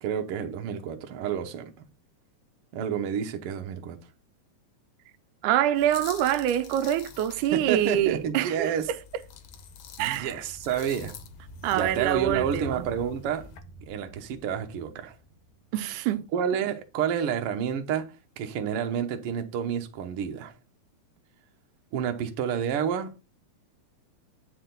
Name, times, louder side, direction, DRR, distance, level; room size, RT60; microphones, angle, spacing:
voice 1, 0.0-1.9 2.7-4.0 7.5-8.9 10.0-11.1 11.7-13.5 13.9-15.1 16.3-20.5 21.9-23.1, right 8 dB, 65° right, 1.5 m, -29 dB
voice 2, 5.4-8.7 10.0-10.4 11.6-12.9 15.7-16.3, right 11 dB, 90° right, 2.1 m, -25 dB
sound 1, 5.7-8.3 8.8-13.6, left 9 dB, 75° left, 2.3 m, -48 dB
sound 2, 6.8-16.5 16.8-16.9, right 1 dB, 35° left, 0.6 m, -46 dB
8.8 x 4.9 x 3.8 m
omnidirectional pair, 3.5 m